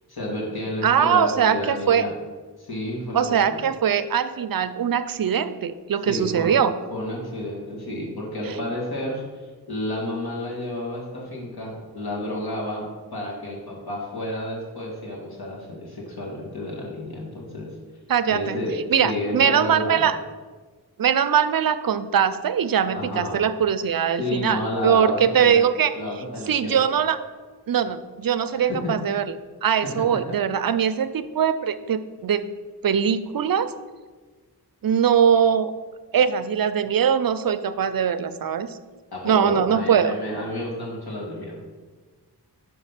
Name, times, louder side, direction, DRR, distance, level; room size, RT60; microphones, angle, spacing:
voice 1, 0.1-2.1 2.6-3.6 6.0-6.6 6.9-12.9 13.1-17.7 18.3-20.1 22.9-23.4 24.2-25.7 25.9-26.8 28.6-28.9 30.1-30.2 39.1-41.6, left 1 dB, 65° left, -3 dB, 2.1 m, -30 dB
voice 2, 0.8-2.1 3.1-6.7 18.1-18.6 18.9-20.2 21.0-25.9 26.5-27.2 27.7-29.3 29.6-32.5 32.8-33.7 34.8-35.7 36.1-38.8 39.2-40.1, right 8 dB, 60° right, 13 dB, 0.5 m, -21 dB
5.5 x 5.2 x 5.7 m, 1.4 s
wide cardioid pair, 45°, 40 cm